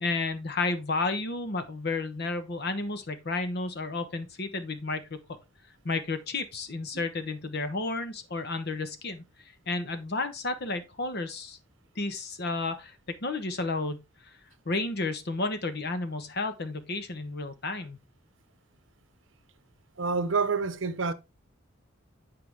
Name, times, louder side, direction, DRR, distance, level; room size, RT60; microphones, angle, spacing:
voice 1, 0.0-5.2 5.8-9.2 9.7-11.6 12.0-14.3 14.7-18.0, left 3 dB, 55° left, 1.0 m, -32 dB
voice 2, 20.0-21.1, right 4 dB, 70° right, 0.7 m, -27 dB
8.5 x 4.8 x 3.5 m
head